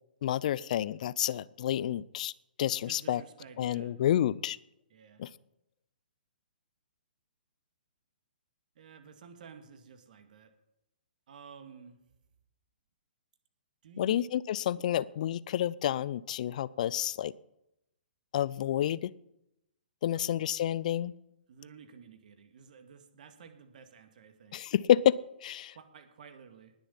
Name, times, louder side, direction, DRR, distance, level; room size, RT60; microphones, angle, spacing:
voice 1, 0.2-2.3 2.6-3.2 3.6-4.6 5.2-5.3 14.0-17.3 18.3-19.1 20.0-21.1 24.5-25.8, left 11 dB, 50° left, 20 dB, 0.5 m, -29 dB
voice 2, 2.8-4.0 4.9-5.2 8.8-10.5 11.3-12.0 13.8-14.2 20.1-20.4 21.5-24.6 25.6-26.7, right 6 dB, 55° right, 7 dB, 1.9 m, -52 dB
19.5 x 7.1 x 5.6 m, 0.86 s
figure-of-eight pair, 125°, 5 cm